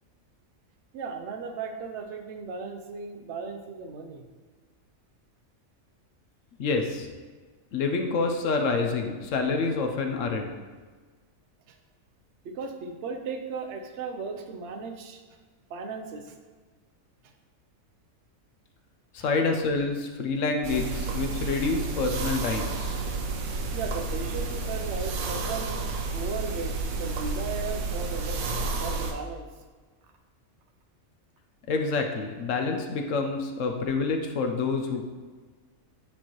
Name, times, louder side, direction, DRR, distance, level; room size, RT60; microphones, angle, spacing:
voice 1, 0.9-4.3 11.7-11.8 12.4-15.2 15.7-16.3 23.7-25.7 26.1-29.5, right 5 dB, 60° right, 5 dB, 0.9 m, -36 dB
voice 2, 6.6-7.1 7.7-10.5 19.1-23.0 31.7-35.0, left 4 dB, 70° left, 4 dB, 1.0 m, -27 dB
sound 1, 20.6-29.1, right 3 dB, 85° right, 1.1 m, -31 dB
8.7 x 4.2 x 3.0 m, 1.4 s
omnidirectional pair, 1.4 m